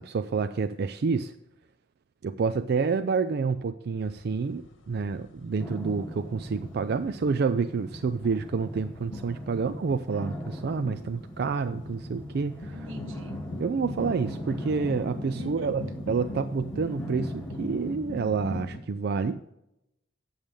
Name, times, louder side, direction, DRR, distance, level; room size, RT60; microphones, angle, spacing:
voice 1, 0.0-1.3 2.2-12.9 13.6-19.4, right 5 dB, 55° right, 0.4 m, -28 dB
sound 1, 4.0-18.8, left 1 dB, 75° left, 1.5 m, -41 dB
sound 2, 5.6-17.9, equal, 10° left, 1.0 m, -41 dB
voice 2, 12.7-13.4 15.3-15.7, left 1 dB, 85° right, 1.1 m, -42 dB
8.9 x 7.1 x 4.8 m
head